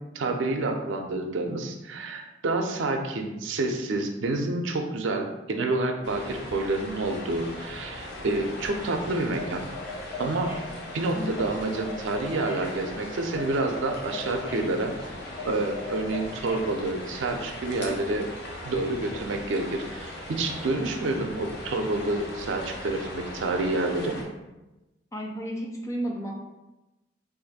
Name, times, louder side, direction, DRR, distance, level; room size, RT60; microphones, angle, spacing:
voice 1, 0.1-9.7 10.2-10.6 10.9-14.9 15.4-18.3 18.6-24.2, right 2 dB, 85° right, 4 dB, 0.5 m, -28 dB
sound 1, 6.0-24.2, left 1 dB, 60° left, 0.7 m, -39 dB
sound 2, 8.9-16.7, left 3 dB, 85° left, 1.2 m, -40 dB
voice 2, 25.1-26.3, equal, 15° left, 0 dB, 0.4 m, -32 dB
2.5 x 2.5 x 4.0 m, 1.0 s
head